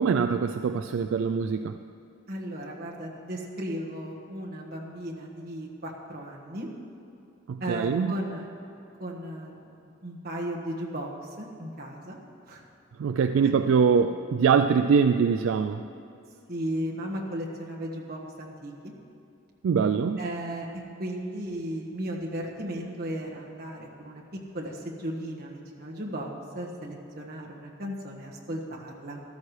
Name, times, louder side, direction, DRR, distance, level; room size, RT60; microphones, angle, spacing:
voice 1, 0.0-1.8 7.5-8.1 13.0-15.8 19.6-20.2, right 6 dB, 75° right, 9 dB, 0.3 m, -23 dB
voice 2, 2.3-6.7 7.6-8.5 9.0-9.7 10.0-11.1 11.4-12.2 12.5-12.6 13.4-13.5 16.5-18.7 20.2-20.7 21.0-24.2 24.5-29.2, right 1 dB, 50° right, -1 dB, 1.5 m, -35 dB
14.0 x 13.0 x 3.2 m, 2.7 s
head